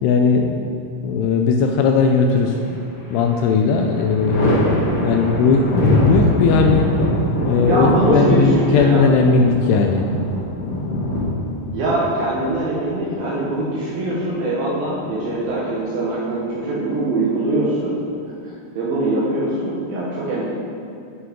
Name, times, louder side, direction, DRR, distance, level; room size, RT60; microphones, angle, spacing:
voice 1, 0.0-2.8 3.1-4.6 5.0-6.9 7.4-10.1, left 5 dB, 85° left, 3 dB, 2.4 m, -18 dB
Thunder, 2.5-3.2 3.6-13.2 14.7-15.5, left 1 dB, 65° left, 1.3 m, -22 dB
voice 2, 7.7-9.0 11.7-18.0 18.4-20.5, right 2 dB, 70° right, -7 dB, 2.4 m, -22 dB
9.7 x 6.1 x 3.7 m, 2.7 s
omnidirectional pair, 5.0 m